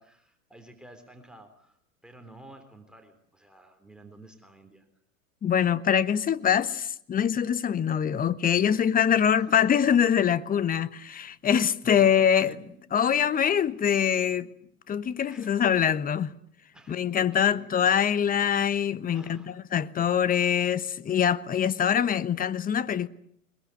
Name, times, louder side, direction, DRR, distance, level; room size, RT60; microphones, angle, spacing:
voice 1, 0.0-4.9 9.1-9.5 11.8-12.7 13.0-13.4 15.3-15.5 16.7-17.9 19.1-19.6, right 1 dB, ahead, 3.6 m, -50 dB
voice 2, 5.4-12.5 12.9-14.5 14.9-16.3 16.9-23.1, left 8 dB, 20° left, 1.1 m, -24 dB
23.0 x 22.0 x 9.6 m
hypercardioid pair, 95°, 43 cm